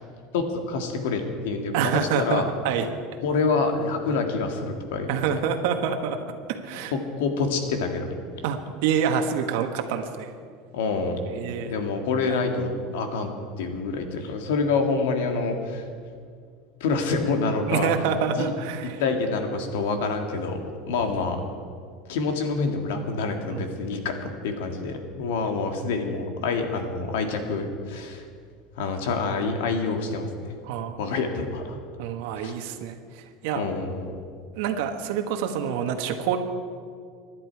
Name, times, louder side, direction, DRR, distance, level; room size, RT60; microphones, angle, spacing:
voice 1, 0.3-2.5 3.2-5.4 6.9-8.1 10.7-11.2 11.6-13.3 13.6-15.9 16.8-17.9 18.3-18.5 18.8-21.4 22.1-28.2 28.8-30.5 31.0-31.8 32.4-32.5 33.5-34.2, left 4 dB, 90° left, 4 dB, 2.1 m, -27 dB
voice 2, 1.7-2.8 5.1-6.2 6.5-6.9 8.4-10.3 11.3-11.7 12.3-12.4 15.3-15.7 17.7-19.0 23.5-23.9 30.6-30.9 32.0-33.6 34.5-36.4, right 7 dB, 75° right, 5 dB, 1.3 m, -27 dB
24.0 x 10.5 x 4.7 m, 2.2 s
supercardioid pair, 150°, 0 cm